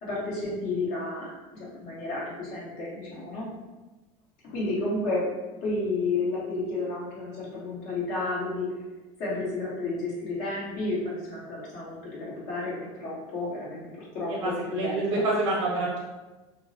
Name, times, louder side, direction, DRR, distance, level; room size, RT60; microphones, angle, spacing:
voice 1, 0.0-3.5 4.5-5.2 5.6-8.7 9.2-15.2, left 2 dB, 60° left, -6 dB, 1.2 m, -31 dB
voice 2, 14.3-16.0, right 2 dB, 75° right, -4 dB, 0.7 m, -27 dB
2.5 x 2.0 x 2.7 m, 1.1 s
hypercardioid pair, 90°, 15 cm